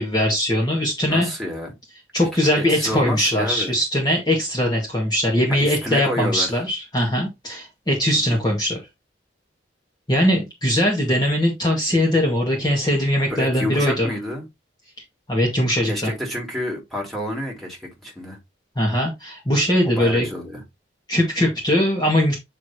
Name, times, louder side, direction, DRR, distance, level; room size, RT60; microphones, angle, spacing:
voice 1, 0.0-1.3 2.1-8.8 10.1-14.1 15.3-16.1 18.8-20.3 21.1-22.4, equal, 20° left, 2.0 m, -21 dB
voice 2, 1.1-1.7 2.5-3.7 5.6-6.5 8.1-8.4 13.3-14.4 15.9-18.4 19.8-20.6, equal, ahead, 3.0 m, -29 dB
9.0 x 4.7 x 2.9 m
head